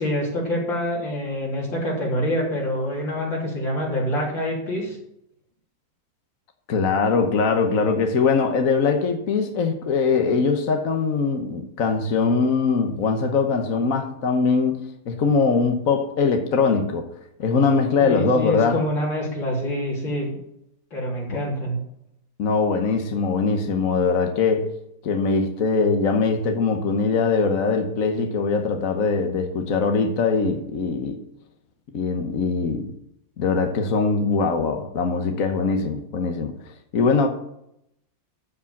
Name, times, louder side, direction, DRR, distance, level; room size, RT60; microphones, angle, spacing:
voice 1, 0.0-5.0 18.0-20.3 20.9-21.8, left 1 dB, 80° left, -5 dB, 4.1 m, -26 dB
voice 2, 6.7-17.1 17.4-18.8 21.3-21.4 22.4-24.7 25.0-31.2 31.9-32.9 33.4-36.6 36.9-37.3, left 4 dB, 50° left, 5 dB, 1.3 m, -22 dB
13.5 x 5.2 x 7.2 m, 0.79 s
omnidirectional pair, 2.1 m